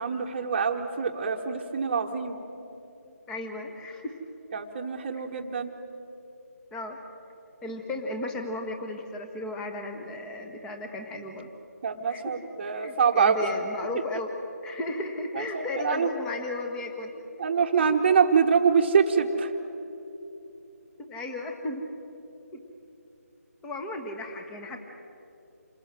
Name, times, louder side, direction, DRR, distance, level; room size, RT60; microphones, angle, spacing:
voice 1, 0.0-2.4 4.5-5.7 11.8-13.3 15.3-16.1 17.4-19.5, right 6 dB, 30° right, -3 dB, 1.2 m, -25 dB
voice 2, 3.0-4.1 5.2-5.3 6.7-7.0 7.6-11.5 12.1-12.3 12.7-14.3 14.6-17.2 17.7-17.8 21.0-21.8 22.5-22.6 23.6-24.8, left 2 dB, 10° left, 4 dB, 1.3 m, -35 dB
27.5 x 20.5 x 7.6 m, 2.9 s
figure-of-eight pair, 160°, 9 cm